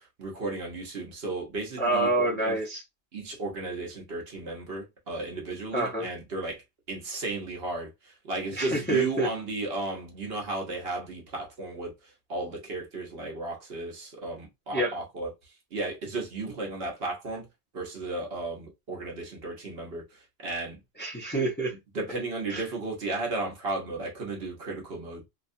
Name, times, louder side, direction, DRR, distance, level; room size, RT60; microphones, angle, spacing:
voice 1, 0.2-2.6 3.1-6.6 6.9-7.9 8.2-11.9 12.3-15.3 15.7-17.5 17.7-20.0 20.4-20.8 21.9-25.2, right 2 dB, 65° right, 1.2 m, -34 dB
voice 2, 1.8-2.8 5.7-6.1 8.5-9.3 14.7-15.0 21.0-21.7 22.5-22.6, right 2 dB, 10° left, 0.6 m, -27 dB
2.8 x 2.3 x 2.6 m
omnidirectional pair, 1.1 m